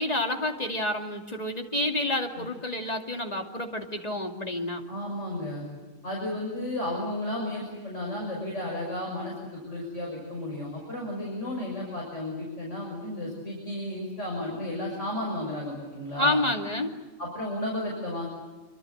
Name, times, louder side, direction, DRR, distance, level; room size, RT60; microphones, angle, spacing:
voice 1, 0.0-4.8 16.2-16.9, left 1 dB, 30° left, 2 dB, 2.7 m, -29 dB
voice 2, 4.9-5.7 6.0-16.4 17.2-18.3, left 1 dB, 60° left, -2 dB, 6.4 m, -33 dB
26.5 x 25.0 x 7.9 m, 1.3 s
omnidirectional pair, 1.4 m